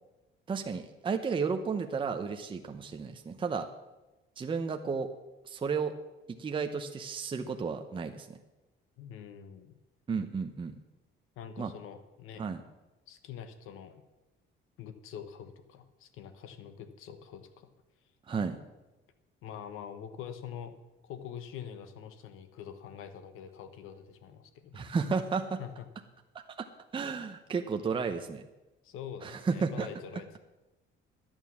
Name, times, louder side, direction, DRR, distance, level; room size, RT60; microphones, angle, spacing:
voice 1, 0.5-3.7 4.4-5.1 5.4-5.9 6.3-8.3 10.1-10.8 11.6-11.7 12.4-12.6 18.3-18.6 24.7-25.6 26.6-26.7 26.9-28.4 29.2-29.9, right 5 dB, 25° right, 5 dB, 0.8 m, -33 dB
voice 2, 9.0-9.7 11.4-12.4 13.1-14.0 14.8-17.7 19.4-20.7 21.0-24.9 25.6-25.8 28.8-30.4, left 8 dB, 85° left, 10 dB, 1.2 m, -45 dB
11.5 x 8.9 x 7.3 m, 1.1 s
cardioid pair, 135°, 21 cm